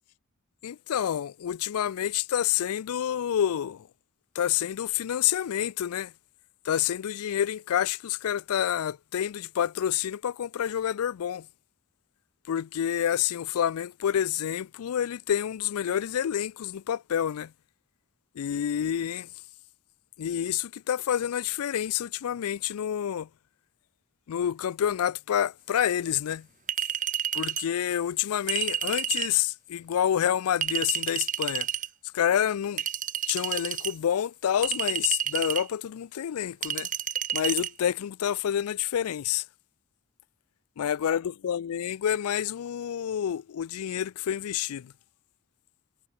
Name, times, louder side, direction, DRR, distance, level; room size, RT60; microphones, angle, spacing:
voice 1, 0.6-3.9 4.4-6.1 6.7-11.5 12.5-17.5 18.4-19.3 20.2-23.3 24.3-26.5 27.3-31.7 32.1-32.8 33.3-36.9 37.3-39.4 40.8-44.9, left 9 dB, 70° left, 0.4 m, -28 dB
Chink clink, 26.7-27.7 28.5-29.3 30.6-31.9 32.8-33.9 34.6-35.7 36.6-37.7, right 10 dB, 35° right, 0.9 m, -30 dB
head